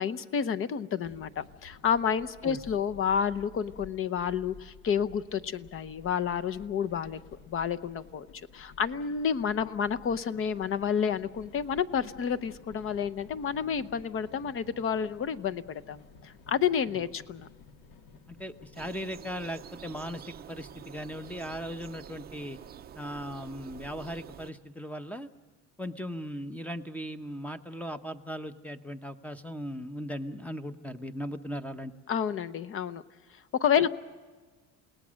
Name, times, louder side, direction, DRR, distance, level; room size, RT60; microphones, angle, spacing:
voice 1, 0.0-7.2 7.5-8.3 8.5-17.5 32.1-33.0 33.6-33.9, left 7 dB, 35° left, 14 dB, 0.8 m, -30 dB
sound 1, 1.0-19.1, left 4 dB, 65° left, 1.9 m, -53 dB
voice 2, 18.3-22.6 23.0-25.3 25.8-31.9 33.8-33.9, equal, 5° left, 10 dB, 0.8 m, -38 dB
sound 2, 18.7-24.5, right 9 dB, 25° right, 0.6 m, -47 dB
29.0 x 18.5 x 6.3 m, 1.4 s
cardioid pair, 145°, 36 cm